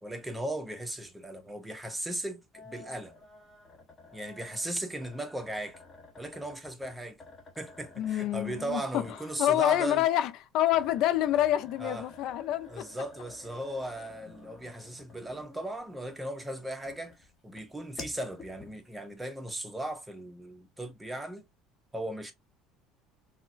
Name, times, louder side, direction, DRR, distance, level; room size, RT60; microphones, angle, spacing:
voice 1, 0.0-3.1 4.1-5.8 6.2-7.2 7.6-10.0 11.8-12.0 12.7-21.4 21.9-22.3, right 1 dB, 10° right, 0.7 m, -37 dB
sound 1, 2.5-15.8 16.3-19.1, left 3 dB, 30° left, 1.0 m, -51 dB
voice 2, 8.0-9.0 9.4-12.8, left 12 dB, 65° left, 0.3 m, -27 dB
3.7 x 2.1 x 2.4 m
supercardioid pair, 105°, 0 cm